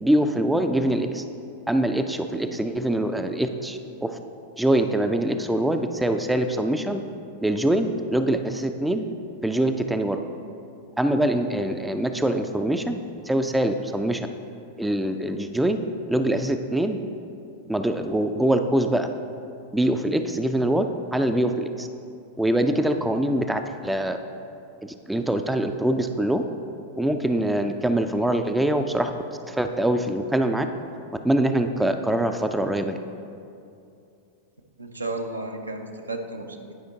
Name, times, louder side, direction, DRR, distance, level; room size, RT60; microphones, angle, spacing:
voice 1, 0.0-1.2 1.7-4.1 4.6-7.0 7.4-9.0 9.4-10.2 11.0-13.0 13.3-14.2 14.8-15.8 16.1-17.0 17.7-19.1 19.7-20.9 21.1-21.9 22.4-24.2 25.1-26.4 27.0-29.1 29.5-30.7 31.2-33.0, right 1 dB, 5° right, 7 dB, 0.4 m, -23 dB
voice 2, 34.8-36.7, right 2 dB, 80° right, 3 dB, 0.6 m, -33 dB
10.5 x 5.0 x 3.9 m, 2.6 s
figure-of-eight pair, 90°, 0 cm